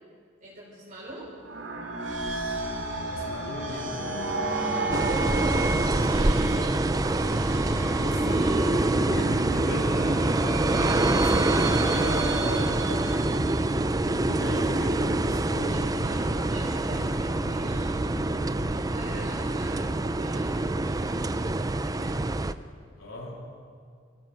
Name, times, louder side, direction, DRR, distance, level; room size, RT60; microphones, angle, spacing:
voice 1, 0.4-1.3 15.5-22.1, right 1 dB, 40° right, -6 dB, 5.0 m, -43 dB
sound 1, 1.3-13.9, right 2 dB, 60° right, 2.9 m, -33 dB
sound 2, 2.1-18.8, left 1 dB, 50° left, 1.1 m, -44 dB
voice 2, 3.0-7.5 8.0-13.5 14.1-15.9 23.0-23.5, left 1 dB, 75° left, -1 dB, 3.4 m, -37 dB
sound 3, 4.9-22.5, right 2 dB, 20° right, 0.5 m, -25 dB
27.0 x 16.0 x 6.5 m, 2.1 s
head